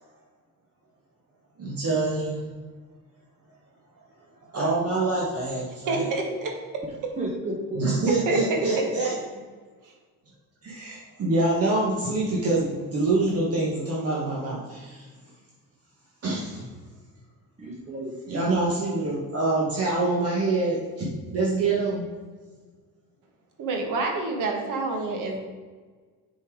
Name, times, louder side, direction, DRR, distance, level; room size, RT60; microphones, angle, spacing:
voice 1, 1.6-2.5 4.5-6.1 7.8-9.1 10.6-15.1 16.2-16.7 18.3-22.0, right 2 dB, 45° right, -4 dB, 1.6 m, -25 dB
voice 2, 5.9-6.5 8.1-8.6 23.6-25.4, right 3 dB, 65° right, 2 dB, 1.6 m, -28 dB
voice 3, 7.2-8.7 17.6-18.1, right 1 dB, 20° right, -3 dB, 1.0 m, -33 dB
7.1 x 4.5 x 4.8 m, 1.5 s
cardioid pair, 110°, 33 cm